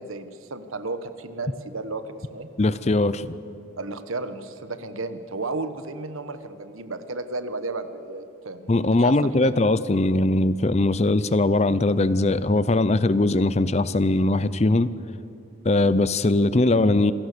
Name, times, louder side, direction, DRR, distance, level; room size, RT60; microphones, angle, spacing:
voice 1, 0.0-2.5 3.8-8.7 9.0-9.1 9.4-9.5, right 3 dB, 80° right, 11 dB, 1.3 m, -33 dB
voice 2, 2.6-3.4 8.7-14.9 15.6-17.1, left 2 dB, 30° left, 15 dB, 0.6 m, -20 dB
26.5 x 17.5 x 6.8 m, 2.9 s
head